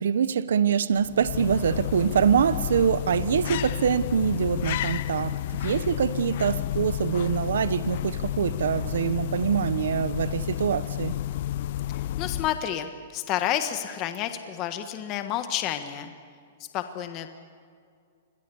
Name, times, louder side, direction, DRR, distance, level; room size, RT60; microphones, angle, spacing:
voice 1, 0.0-11.2, right 7 dB, 80° right, 1.0 m, -24 dB
sound 1, 0.9-12.8, left 12 dB, 55° left, 0.7 m, -31 dB
voice 2, 12.2-16.1 16.7-17.3, left 11 dB, 30° left, 1.4 m, -30 dB
28.5 x 22.0 x 7.1 m
hypercardioid pair, 150°, 0 cm